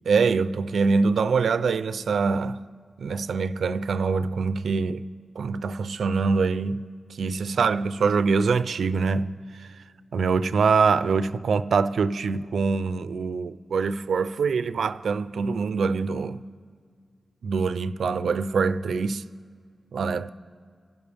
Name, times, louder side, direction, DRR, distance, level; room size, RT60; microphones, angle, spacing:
voice 1, 0.1-2.6 3.0-5.1 5.4-9.4 10.1-16.4 17.4-19.3 19.9-20.3, right 4 dB, 80° right, 0.5 m, -24 dB
28.0 x 12.0 x 3.5 m
wide cardioid pair, 145°, 0 cm